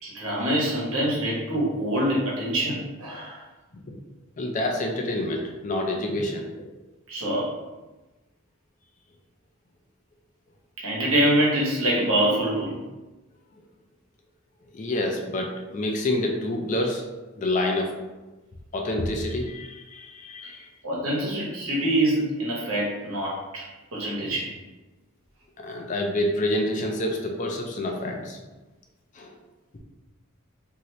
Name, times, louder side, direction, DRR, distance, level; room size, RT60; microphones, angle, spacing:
voice 1, 0.0-3.4 7.1-7.5 10.8-12.8 20.8-23.7 23.9-24.5, right 1 dB, 85° right, -4 dB, 1.1 m, -25 dB
voice 2, 4.4-6.7 14.7-17.0 17.3-17.9 18.7-20.6 25.6-28.4 29.2-29.3, left 1 dB, 35° left, 2 dB, 0.4 m, -27 dB
2.8 x 2.7 x 3.1 m, 1.1 s
head